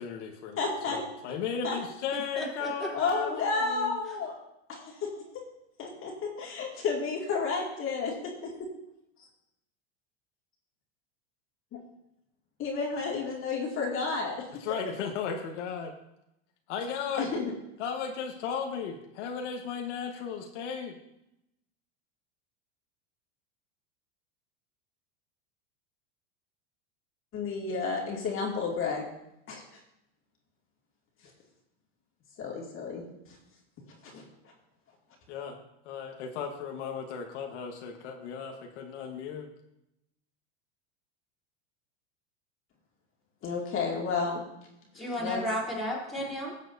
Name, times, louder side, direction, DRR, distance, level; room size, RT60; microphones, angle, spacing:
voice 1, 0.0-3.9 14.6-15.9 16.7-17.3 17.8-21.0 35.3-39.5, left 6 dB, 75° left, 3 dB, 1.4 m, -36 dB
voice 2, 0.6-1.0 1.6-1.8 2.9-4.3 4.7-5.1 5.8-8.7 11.7-11.8 12.6-14.3 17.2-17.5 27.3-29.1 29.5-29.6 32.4-33.4 34.0-34.2 43.4-44.4 44.9-45.4, left 4 dB, 35° left, -1 dB, 2.3 m, -31 dB
voice 3, 2.4-2.9 44.9-46.5, equal, ahead, -5 dB, 3.7 m, -33 dB
16.0 x 7.5 x 2.7 m, 0.84 s
supercardioid pair, 125°, 35 cm